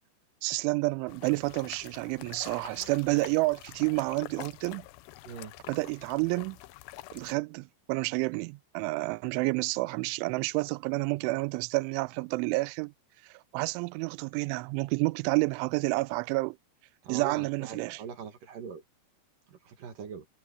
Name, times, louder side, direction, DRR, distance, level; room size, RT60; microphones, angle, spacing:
voice 1, 0.4-4.8 5.7-6.6 7.1-12.9 13.5-16.6 17.1-18.0, right 25 dB, 85° right, 3.0 m, -29 dB
sound 1, 1.1-7.3, left 17 dB, 80° left, 2.5 m, -47 dB
voice 2, 17.0-18.8 19.5-20.2, right 7 dB, 55° right, 3.1 m, -41 dB
omnidirectional pair, 5.5 m